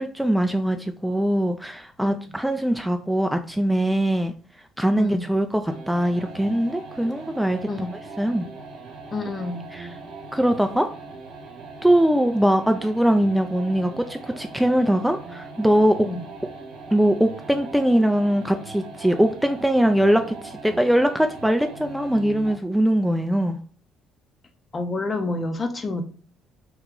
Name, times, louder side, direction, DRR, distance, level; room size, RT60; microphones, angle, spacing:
voice 1, 0.0-4.3 4.8-7.6 8.2-8.5 9.7-9.9 10.3-10.9 11.8-16.0 16.9-23.6, right 1 dB, 5° right, 0.3 m, -21 dB
voice 2, 5.0-5.3 7.7-7.9 9.1-9.7 16.0-16.2 24.7-26.0, left 2 dB, 35° left, 0.6 m, -28 dB
sound 1, 5.7-22.7, right 3 dB, 75° right, 0.8 m, -40 dB
3.0 x 2.3 x 3.6 m
supercardioid pair, 75°, 0 cm